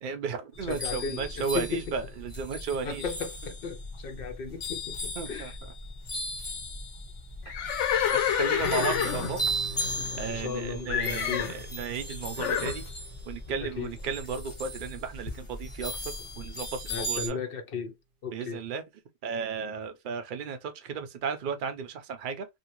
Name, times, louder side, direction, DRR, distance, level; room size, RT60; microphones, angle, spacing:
voice 1, 0.0-3.0 5.2-5.5 7.5-7.6 8.1-9.4 10.2-12.8 13.2-17.4 18.3-18.8 19.2-22.5, right 5 dB, 55° right, 0.7 m, -34 dB
sound 1, 0.5-17.3, equal, 30° left, 1.0 m, -37 dB
voice 2, 0.7-1.9 2.8-5.6 10.3-11.5 13.6-13.9 16.9-17.9 18.2-18.6, left 5 dB, 60° left, 0.7 m, -35 dB
Livestock farm animals working animals, 7.5-10.6 10.9-11.6 12.4-12.8, left 8 dB, 85° left, 1.0 m, -28 dB
Strum, 8.6-14.9, right 3 dB, 80° right, 1.1 m, -43 dB
2.7 x 2.6 x 2.9 m
omnidirectional pair, 1.2 m